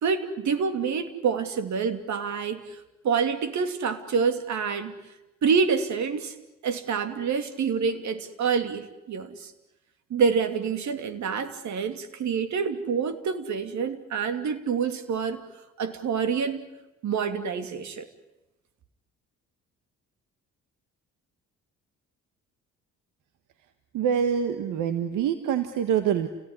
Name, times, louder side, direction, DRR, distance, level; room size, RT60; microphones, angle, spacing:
voice 1, 0.0-4.9 5.4-6.3 6.6-9.5 10.1-15.4 15.8-16.7 17.0-18.1, right 6 dB, 70° right, 9 dB, 2.8 m, -27 dB
voice 2, 23.9-26.3, right 8 dB, 90° right, 9 dB, 1.6 m, -25 dB
29.5 x 18.0 x 9.9 m, 1.0 s
cardioid pair, 90°, 30 cm